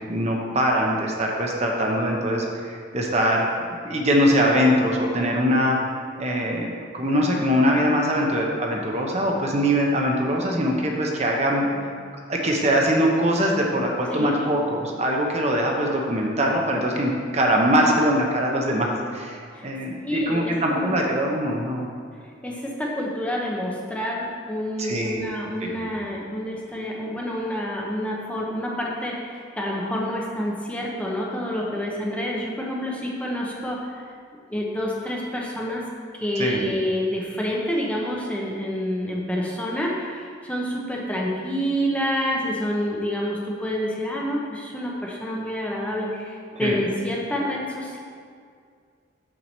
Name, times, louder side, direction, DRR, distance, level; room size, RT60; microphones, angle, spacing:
voice 1, 0.1-5.8 6.2-6.7 6.9-11.7 12.3-21.9 24.8-25.2 25.6-25.9 36.4-36.6 46.5-46.8, equal, 35° right, 0 dB, 0.8 m, -22 dB
voice 2, 20.0-21.0 22.2-34.1 34.5-35.8 36.1-48.0, equal, 5° left, -3 dB, 0.8 m, -28 dB
6.0 x 4.7 x 6.6 m, 2.2 s
head